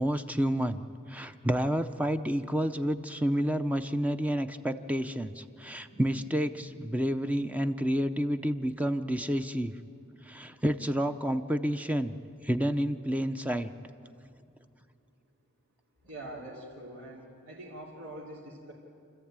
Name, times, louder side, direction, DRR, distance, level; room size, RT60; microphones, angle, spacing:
voice 1, 0.0-9.7 10.2-12.1 12.4-13.7, equal, 5° right, 9 dB, 0.6 m, -29 dB
voice 2, 16.0-18.7, right 1 dB, 85° right, -6 dB, 3.3 m, -44 dB
28.5 x 14.0 x 8.9 m, 2.5 s
head